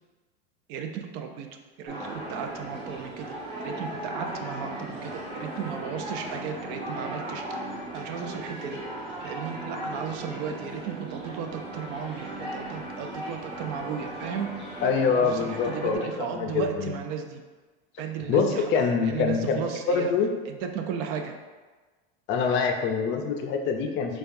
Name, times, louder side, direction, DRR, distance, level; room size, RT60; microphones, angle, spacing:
voice 1, 0.7-3.3 3.6-8.8 9.2-17.4 18.0-20.1 20.5-21.4, right 7 dB, 55° right, 5 dB, 0.5 m, -35 dB
sound 1, 1.9-16.0, right 1 dB, 35° right, 1.4 m, -37 dB
voice 2, 14.8-16.9 18.3-19.6 19.9-20.3 22.3-24.2, left 5 dB, 40° left, 4 dB, 0.4 m, -25 dB
4.4 x 2.3 x 2.5 m, 1.3 s
supercardioid pair, 125°, 30 cm